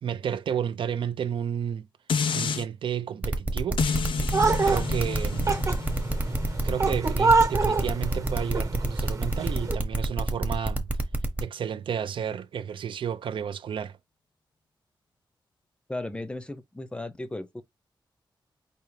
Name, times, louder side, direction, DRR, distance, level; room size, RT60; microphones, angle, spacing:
voice 1, 0.0-1.9 2.3-3.8 4.6-5.5 6.6-10.9 11.4-14.0, right 8 dB, 85° right, 0.5 m, -31 dB
sound 1, 2.1-2.6 3.8-8.9 9.4-9.5, left 6 dB, 90° left, 0.6 m, -31 dB
sound 2, 3.2-11.4, right 1 dB, 20° right, 0.9 m, -28 dB
sound 3, 4.3-9.8, right 4 dB, 40° right, 1.1 m, -26 dB
voice 2, 15.9-17.6, left 2 dB, 10° left, 0.5 m, -35 dB
5.1 x 2.8 x 3.2 m
wide cardioid pair, 150°, 8 cm